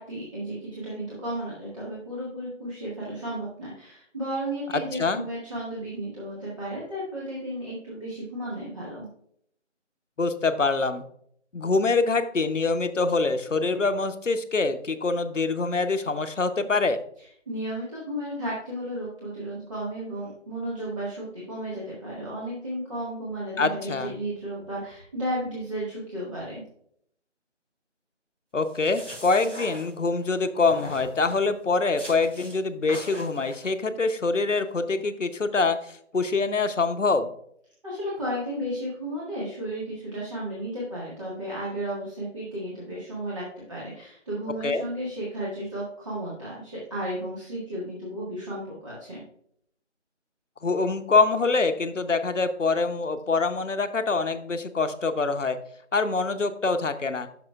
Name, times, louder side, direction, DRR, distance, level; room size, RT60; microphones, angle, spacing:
voice 1, 0.0-9.1 17.5-26.6 37.8-49.2, right 1 dB, 25° right, -7 dB, 1.7 m, -33 dB
voice 2, 4.7-5.2 10.2-11.0 11.5-17.0 23.6-24.1 28.5-35.8 36.1-37.3 44.6-44.9 50.6-55.6 55.9-57.3, left 3 dB, 85° left, 9 dB, 0.9 m, -25 dB
sound 1, 28.6-30.3 30.7-31.5 32.0-32.6 32.9-33.7, equal, 85° right, 3.3 m, -42 dB
9.7 x 6.2 x 2.4 m, 0.67 s
figure-of-eight pair, 165°, 36 cm